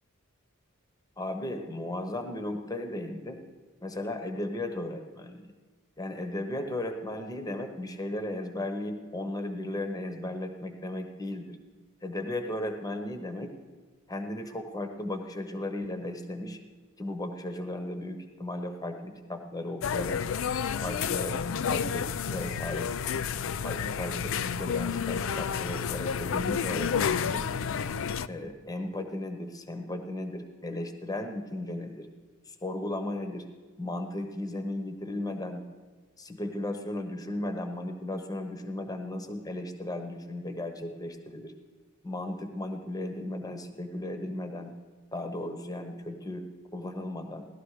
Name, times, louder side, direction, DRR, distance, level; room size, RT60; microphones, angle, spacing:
voice 1, 1.2-3.4 3.8-5.4 6.0-11.6 12.0-13.5 14.1-16.6 17.0-20.2 20.8-21.4 21.7-22.9 23.6-27.5 28.3-32.1 32.5-33.5 33.8-35.6 36.2-41.5 42.0-44.7 45.1-47.5, left 1 dB, 20° left, 6 dB, 1.1 m, -35 dB
sound 1, 19.8-28.3, left 7 dB, 65° left, 0.4 m, -30 dB
17.0 x 12.0 x 4.9 m, 1.4 s
head